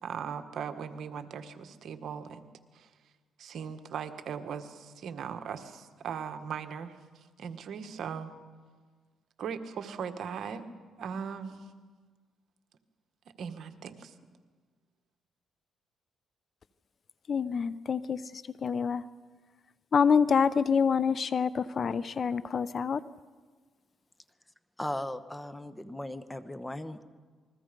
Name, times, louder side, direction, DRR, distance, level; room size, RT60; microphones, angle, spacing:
voice 1, 0.0-2.5 2.7-2.9 3.4-8.3 9.4-10.7 11.0-11.7 13.4-14.1, right 7 dB, 65° right, 7 dB, 1.6 m, -39 dB
voice 2, 17.3-19.0 19.9-23.0, left 6 dB, 45° left, 16 dB, 0.7 m, -27 dB
voice 3, 24.8-27.0, left 1 dB, 10° left, 11 dB, 1.2 m, -37 dB
28.0 x 21.5 x 5.3 m, 1.5 s
cardioid pair, 90°, 0 cm